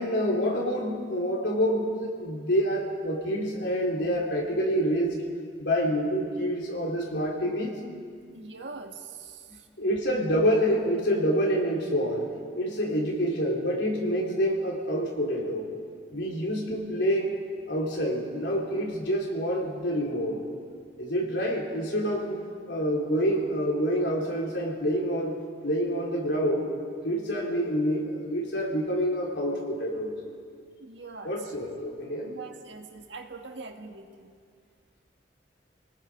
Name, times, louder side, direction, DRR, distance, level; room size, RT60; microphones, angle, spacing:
voice 1, 0.0-5.3 5.6-7.8 9.8-15.7 16.1-17.4 17.7-20.4 21.0-26.7 27.0-30.1 31.2-32.3, equal, 75° left, -2 dB, 4.0 m, -27 dB
voice 2, 8.3-9.5 30.8-31.4 32.3-34.3, right 4 dB, 80° right, 4 dB, 1.8 m, -42 dB
29.5 x 19.0 x 5.2 m, 2.1 s
head